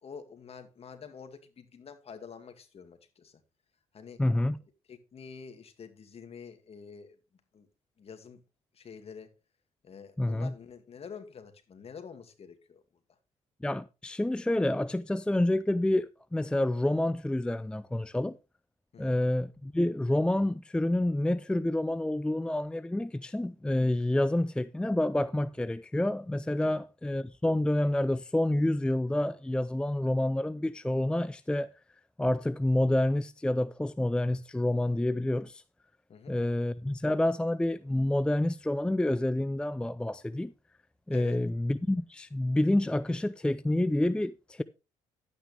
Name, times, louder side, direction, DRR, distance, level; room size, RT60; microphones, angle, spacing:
voice 1, 0.0-3.4 3.9-4.2 4.9-7.2 7.5-7.7 8.0-8.4 8.7-9.3 9.8-12.8 18.9-19.2 26.6-26.8 36.1-36.4 41.1-41.4, left 6 dB, 45° left, 2.3 m, -47 dB
voice 2, 4.2-4.6 10.2-10.5 13.6-18.4 19.0-31.7 32.2-35.6 36.3-40.5 41.1-44.6, left 1 dB, 5° left, 0.4 m, -28 dB
11.5 x 9.1 x 3.4 m
cardioid pair, 85°, 14 cm